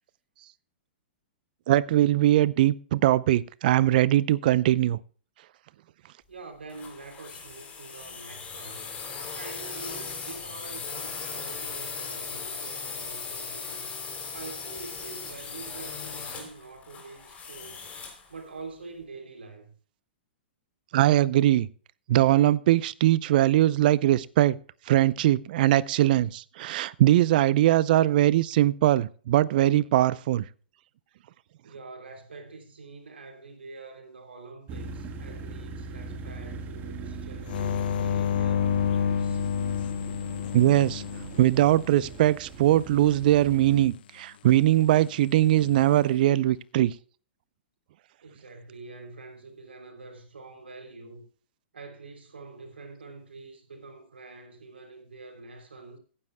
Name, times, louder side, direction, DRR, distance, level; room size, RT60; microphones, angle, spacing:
voice 1, 1.7-5.0 20.9-21.7 22.1-24.6 24.9-30.4 40.5-41.0 41.4-46.9, right 14 dB, 55° right, 0.6 m, -21 dB
voice 2, 6.3-8.9 9.3-13.9 14.3-17.9 18.3-19.7 31.6-39.5 48.2-51.2 51.7-56.0, right 3 dB, 85° right, 3.2 m, -45 dB
sound 1, 6.7-18.3, left 5 dB, 20° left, 3.4 m, -38 dB
sound 2, 34.7-43.9, right 4 dB, 30° right, 1.6 m, -41 dB
sound 3, 37.5-42.1 45.4-45.9, left 8 dB, 60° left, 0.8 m, -29 dB
18.0 x 9.8 x 2.2 m
hypercardioid pair, 120°, 6 cm